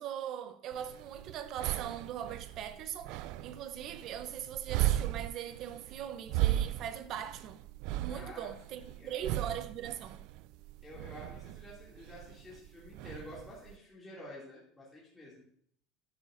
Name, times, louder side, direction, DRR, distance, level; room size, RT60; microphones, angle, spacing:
voice 1, 0.0-7.6 8.0-10.2, right 10 dB, 50° right, 0.8 m, -40 dB
sound 1, 0.7-13.8, right 14 dB, 65° right, 0.3 m, -37 dB
voice 2, 8.1-9.3 10.8-15.4, left 1 dB, 10° left, 2.6 m, -50 dB
12.0 x 11.0 x 2.6 m
cardioid pair, 140°, 0 cm